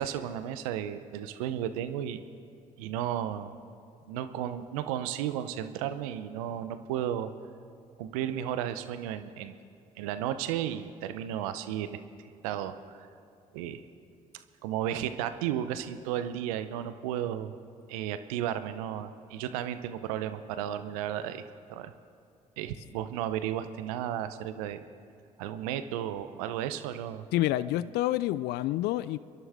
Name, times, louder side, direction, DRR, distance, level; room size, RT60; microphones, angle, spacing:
voice 1, 0.0-2.2 2.8-3.5 4.1-7.3 8.0-9.5 10.0-12.0 12.4-13.1 13.5-13.8 14.3-17.6 17.9-21.9 22.6-24.8 25.4-27.2 27.8-27.9, right 10 dB, 80° right, 11 dB, 0.7 m, -34 dB
voice 2, 27.3-29.2, left 15 dB, 65° left, 17 dB, 0.4 m, -28 dB
28.0 x 11.0 x 3.5 m, 2.4 s
hypercardioid pair, 55°, 18 cm